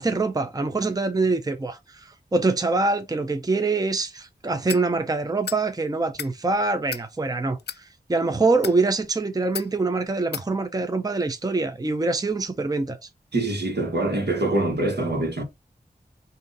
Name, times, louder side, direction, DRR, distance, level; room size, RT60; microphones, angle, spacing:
voice 1, 0.0-13.0, right 3 dB, 20° right, 0.5 m, -24 dB
sound 1, 4.7-4.9 5.4-5.6 6.0-6.3 6.9-7.1 7.6-7.8 8.5-8.8 9.5-9.7 10.3-10.5, left 7 dB, 75° left, 0.4 m, -33 dB
voice 2, 13.3-15.4, right 2 dB, 75° right, 1.4 m, -24 dB
3.9 x 2.7 x 3.8 m
wide cardioid pair, 75°, 17 cm